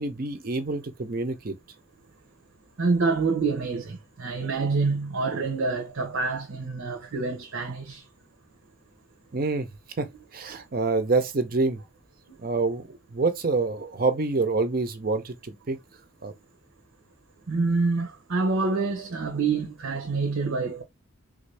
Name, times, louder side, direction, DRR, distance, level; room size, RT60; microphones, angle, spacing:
voice 1, 0.0-1.5 9.3-9.7 10.0-10.1 10.3-11.8 12.4-15.8 16.2-16.3, right 3 dB, 45° right, 0.6 m, -26 dB
voice 2, 2.8-8.0 12.3-12.4 17.5-20.8, right 4 dB, 90° right, 0.8 m, -27 dB
3.5 x 2.6 x 3.3 m
head